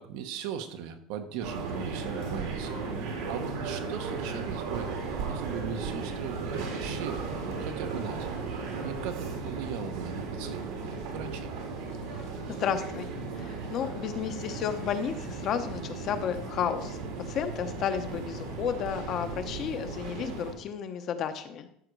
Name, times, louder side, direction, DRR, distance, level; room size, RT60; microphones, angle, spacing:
voice 1, 0.0-4.9 5.3-8.3 8.8-11.5, right 8 dB, 75° right, 7 dB, 1.2 m, -39 dB
sound 1, 1.4-20.5, right 4 dB, 90° right, 3.4 m, -36 dB
voice 2, 12.1-13.1 13.3-21.7, left 8 dB, 40° left, 8 dB, 0.9 m, -32 dB
13.0 x 6.5 x 4.7 m, 0.71 s
cardioid pair, 165°, 0 cm